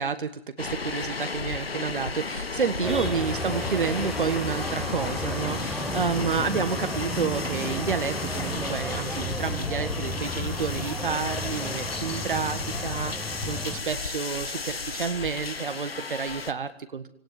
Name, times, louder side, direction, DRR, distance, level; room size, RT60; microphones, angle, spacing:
voice 1, 0.0-17.0, right 5 dB, 55° right, 10 dB, 1.7 m, -30 dB
sound 1, 0.6-16.5, left 4 dB, 75° left, 1.5 m, -33 dB
sound 2, 2.8-13.8, equal, ahead, 1.5 m, -34 dB
25.0 x 17.5 x 9.7 m, 0.70 s
figure-of-eight pair, 135°, 30 cm